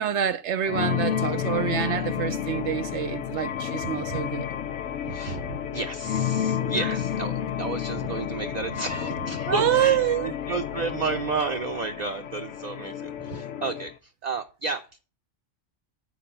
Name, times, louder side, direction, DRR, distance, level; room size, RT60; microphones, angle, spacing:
voice 1, 0.0-4.5 6.7-7.0 9.5-10.3, right 10 dB, 75° right, 0.9 m, -26 dB
sound 1, 0.7-13.9, left 9 dB, 85° left, 1.0 m, -31 dB
voice 2, 3.8-4.2 5.0-14.8, right 4 dB, 40° right, 0.7 m, -32 dB
8.4 x 4.9 x 5.5 m
omnidirectional pair, 1.2 m